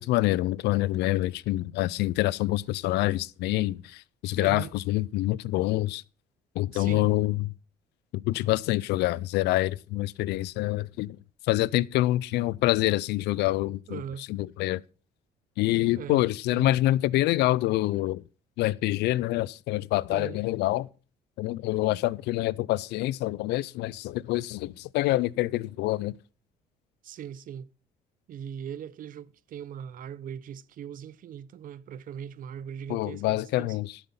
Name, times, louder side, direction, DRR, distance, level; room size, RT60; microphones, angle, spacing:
voice 1, 0.0-6.0 6.5-7.5 8.1-11.2 11.4-14.0 14.3-14.8 15.6-18.2 18.6-20.9 21.4-26.1 32.9-34.0, left 17 dB, 80° left, 0.5 m, -26 dB
voice 2, 4.3-4.8 6.7-7.1 13.9-14.3 15.9-16.7 20.1-20.4 27.0-27.7 28.3-33.8, right 8 dB, 55° right, 0.7 m, -40 dB
12.5 x 7.8 x 5.7 m
cardioid pair, 110°, 17 cm